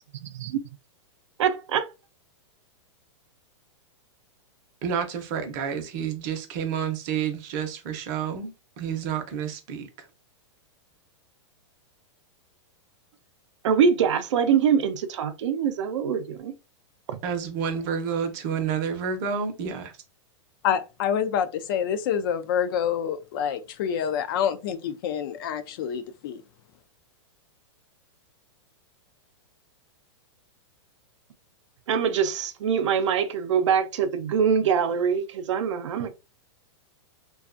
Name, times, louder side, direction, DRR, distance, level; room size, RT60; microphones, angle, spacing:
voice 1, 0.2-0.6 1.4-1.9 13.6-16.5 17.1-17.2 31.9-36.1, right 7 dB, 75° right, 0.5 m, -24 dB
voice 2, 4.8-9.9 17.2-19.9, right 7 dB, 40° right, 0.6 m, -29 dB
voice 3, 20.6-26.4, left 8 dB, 50° left, 0.4 m, -27 dB
2.4 x 2.3 x 2.4 m
supercardioid pair, 155°, 15 cm